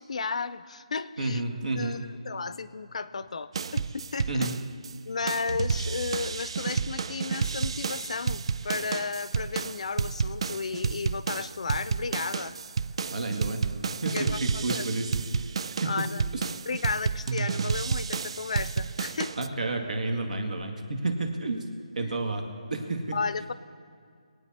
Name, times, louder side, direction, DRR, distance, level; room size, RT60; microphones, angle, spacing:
voice 1, 0.0-1.4 1.8-4.5 5.1-12.6 14.1-14.9 15.8-16.2 16.7-19.4 22.0-22.2 23.1-23.5, left 4 dB, 60° left, 15 dB, 0.6 m, -33 dB
voice 2, 1.2-2.0 4.3-4.5 13.1-13.7 14.0-15.1 15.8-16.0 16.3-16.4 19.4-21.7 22.0-23.2, right 2 dB, 80° right, 3 dB, 2.0 m, -30 dB
sound 1, 3.5-4.9 5.3-19.5, right 5 dB, 45° right, 0.4 m, -31 dB
22.5 x 9.0 x 4.3 m, 2.2 s
hypercardioid pair, 165°, 4 cm